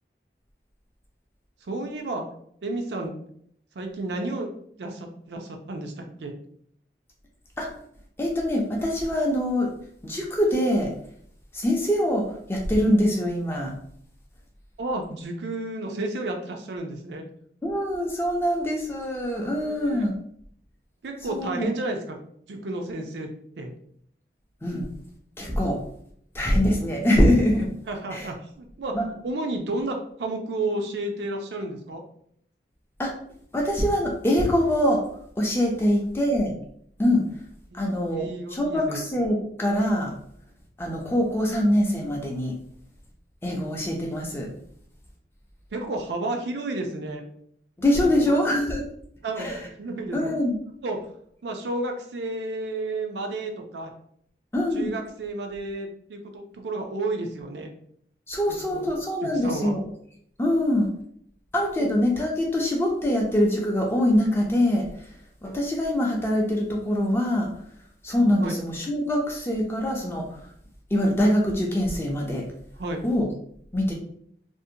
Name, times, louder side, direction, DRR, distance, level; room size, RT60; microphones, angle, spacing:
voice 1, 1.6-2.2 2.6-3.2 3.8-4.5 4.8-5.9 6.2-6.3 14.8-17.2 19.5-20.1 21.0-22.2 22.5-23.3 23.6-23.7 27.9-29.0 29.2-32.0 37.7-37.8 38.2-39.0 45.7-47.2 48.1-48.3 49.2-49.5 49.8-50.3 50.8-51.0 51.4-53.9 54.7-57.7 58.5-58.9 59.2-59.7 61.8-61.9 68.4-68.5 72.8-73.0, right 2 dB, 80° right, 3 dB, 0.4 m, -31 dB
voice 2, 8.2-9.7 10.0-10.9 11.5-12.2 12.5-13.7 17.6-20.2 21.3-21.7 24.6-24.9 25.4-25.8 26.3-27.7 28.1-28.3 28.9-29.0 33.0-33.1 33.5-35.0 35.4-36.6 37.0-37.2 37.7-40.1 40.8-42.5 43.4-44.5 47.8-48.8 49.4-49.6 50.1-50.6 54.5-54.9 58.3-59.8 60.4-60.9 61.5-64.9 65.4-67.5 68.0-70.2 70.9-72.5 73.0-73.3 73.7-73.9, left 1 dB, 15° left, -1 dB, 0.4 m, -23 dB
2.6 x 2.1 x 2.7 m, 0.66 s
head